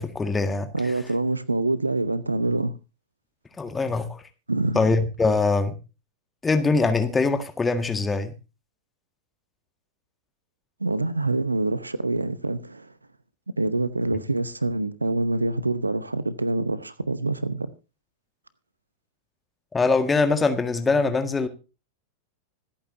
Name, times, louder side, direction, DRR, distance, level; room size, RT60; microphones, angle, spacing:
voice 1, 0.0-0.7 3.6-4.2 4.7-5.8 6.4-8.3 19.7-21.5, left 3 dB, 15° left, 1.7 m, -23 dB
voice 2, 0.7-2.7 4.5-4.8 10.8-12.9 13.6-17.7, right 2 dB, 80° right, 0.8 m, -26 dB
26.0 x 8.7 x 2.7 m
figure-of-eight pair, 90°, 0 cm